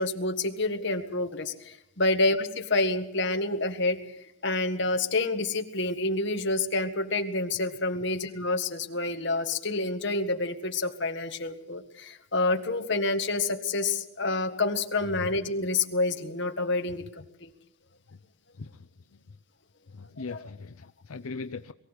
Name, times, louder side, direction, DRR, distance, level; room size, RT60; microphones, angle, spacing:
voice 1, 0.0-4.0 4.4-17.0 17.4-17.5 20.3-20.5, left 2 dB, 55° left, 6 dB, 1.7 m, -28 dB
voice 2, 19.9-21.7, left 4 dB, 85° left, 10 dB, 0.7 m, -39 dB
23.0 x 15.5 x 8.2 m, 0.83 s
head